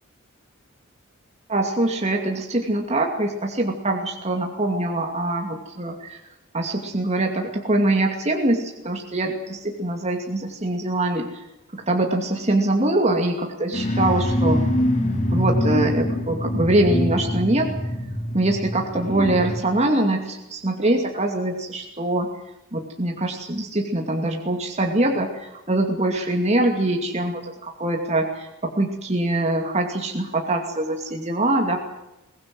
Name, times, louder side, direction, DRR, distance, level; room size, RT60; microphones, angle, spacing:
voice 1, 1.5-6.2 6.5-11.4 11.7-14.6 15.3-17.7 18.3-22.3 22.7-31.8, right 1 dB, 30° right, 2 dB, 2.6 m, -23 dB
sound 1, 13.7-19.6, equal, 35° left, 4.7 m, -24 dB
23.0 x 19.0 x 7.8 m, 0.94 s
head